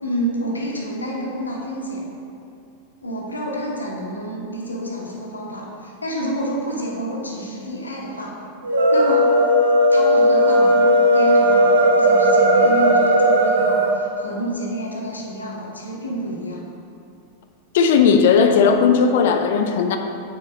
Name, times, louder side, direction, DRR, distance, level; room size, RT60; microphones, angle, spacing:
voice 1, 0.0-2.0 3.0-8.4 8.9-9.3 9.9-16.6, equal, 80° left, -3 dB, 1.2 m, -29 dB
sound 1, 8.6-13.9, equal, 70° right, 0.9 m, -15 dB
voice 2, 17.7-20.0, left 6 dB, 55° left, 6 dB, 0.5 m, -16 dB
6.3 x 4.3 x 6.0 m, 2.5 s
figure-of-eight pair, 90°, 0 cm